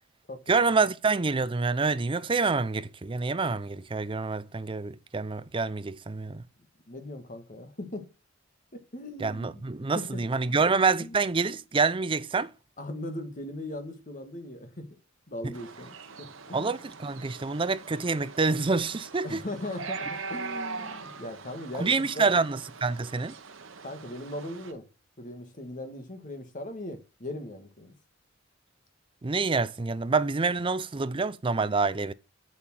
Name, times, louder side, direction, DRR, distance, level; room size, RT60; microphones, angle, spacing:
voice 1, 0.5-6.4 9.2-12.5 15.4-15.5 16.5-19.4 21.8-23.4 29.2-32.1, right 4 dB, 25° right, 0.5 m, -27 dB
voice 2, 6.9-8.1 8.7-9.6 9.9-10.2 10.5-10.6 11.0-11.2 12.8-14.9 15.3-16.8 19.2-21.9 22.2-22.3 23.8-24.9 25.2-27.9, left 1 dB, 40° left, 1.9 m, -39 dB
sound 1, 15.5-24.7, right 4 dB, 75° right, 1.2 m, -41 dB
7.6 x 7.3 x 6.3 m
head